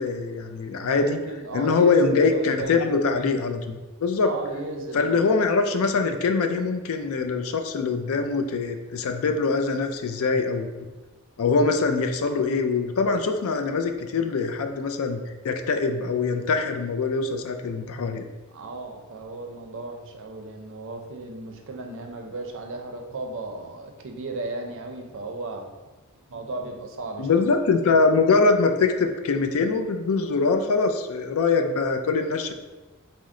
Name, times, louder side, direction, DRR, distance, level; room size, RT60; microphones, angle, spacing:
voice 1, 0.0-1.2 1.5-4.3 4.9-10.7 11.4-18.2 27.2-32.5, left 4 dB, 65° left, 6 dB, 0.4 m, -23 dB
voice 2, 0.9-2.8 4.2-5.3 18.5-25.7 26.3-27.4, right 2 dB, 60° right, 3 dB, 0.5 m, -35 dB
4.2 x 2.1 x 3.6 m, 1.2 s
head